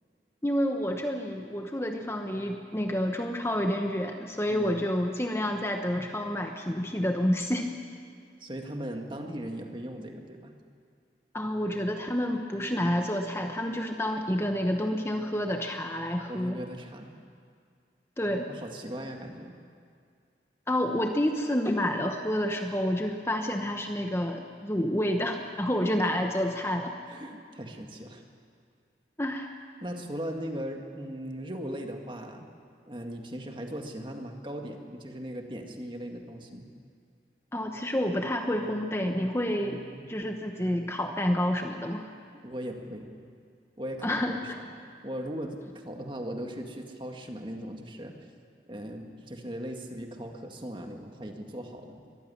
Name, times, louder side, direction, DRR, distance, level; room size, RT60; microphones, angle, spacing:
voice 1, 0.4-7.7 11.3-16.6 18.2-18.5 20.7-26.9 29.2-29.5 37.5-42.1 44.0-44.3, equal, 15° left, 4 dB, 1.0 m, -29 dB
voice 2, 4.5-4.8 8.4-10.5 16.3-17.1 18.5-19.6 27.1-28.2 29.8-32.5 32.9-36.7 39.6-40.1 42.4-43.1 43.8-44.4 45.0-45.6 45.8-48.2 48.7-52.0, equal, 25° right, 3 dB, 1.9 m, -38 dB
22.5 x 15.0 x 9.9 m, 2.2 s
head